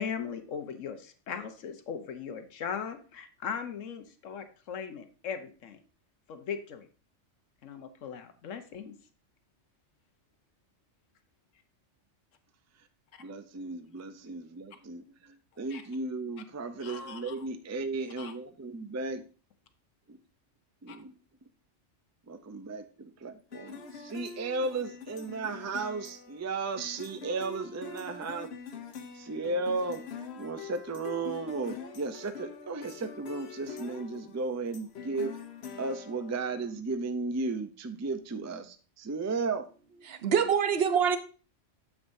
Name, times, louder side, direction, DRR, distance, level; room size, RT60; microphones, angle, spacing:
voice 1, 0.0-5.8 6.3-6.9 7.6-8.9 15.7-15.8 16.8-17.3 18.2-18.3 20.9-21.0, left 7 dB, 90° left, 8 dB, 1.3 m, -38 dB
voice 2, 13.2-19.2 20.1-20.2 20.8-21.2 22.3-28.5 29.1-30.0 30.4-35.4 35.8-39.7, right 3 dB, 25° right, 9 dB, 0.3 m, -35 dB
sound 1, 23.5-36.7, left 6 dB, 60° left, 1.1 m, -44 dB
voice 3, 40.1-41.2, right 7 dB, 60° right, 10 dB, 1.0 m, -25 dB
9.7 x 7.4 x 2.7 m, 0.38 s
omnidirectional pair, 1.3 m